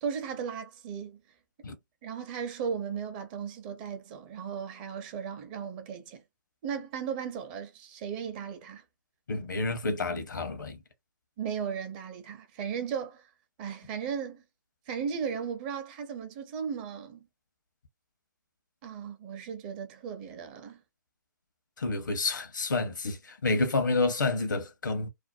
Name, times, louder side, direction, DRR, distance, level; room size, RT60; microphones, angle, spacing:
voice 1, 0.0-1.2 2.0-6.2 6.6-8.8 11.4-13.3 13.6-14.4 14.9-17.2 18.8-20.8, right 7 dB, 30° right, 0.6 m, -36 dB
voice 2, 9.3-10.8 21.8-25.1, left 3 dB, 75° left, 0.8 m, -29 dB
2.5 x 2.1 x 2.6 m
figure-of-eight pair, 130°, 10 cm